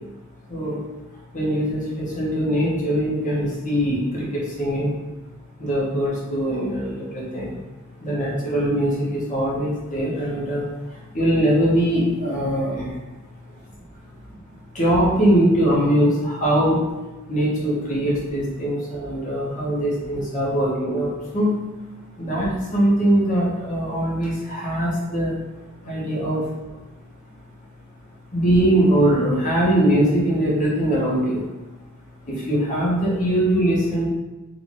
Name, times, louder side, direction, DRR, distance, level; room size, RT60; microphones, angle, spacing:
voice 1, 1.3-4.9 5.6-7.6 8.0-10.6 11.1-12.9 14.7-16.8 17.3-21.5 22.2-25.3 25.8-26.4 28.3-31.4 32.3-34.0, right 1 dB, 35° left, -6 dB, 1.4 m, -21 dB
3.9 x 2.9 x 3.7 m, 1.1 s
head